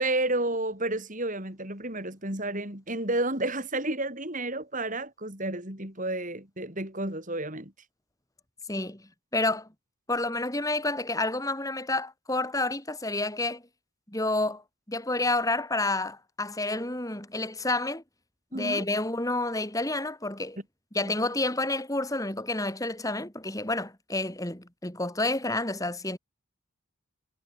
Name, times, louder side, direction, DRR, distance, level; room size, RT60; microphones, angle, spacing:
voice 1, 0.0-7.7 18.5-18.9 21.0-21.1, right 2 dB, 35° right, 5.6 m, -31 dB
voice 2, 8.7-9.0 9.3-9.7 10.1-13.6 14.1-14.6 14.9-18.0 18.5-20.6 20.9-26.2, left 2 dB, 15° left, 2.8 m, -29 dB
head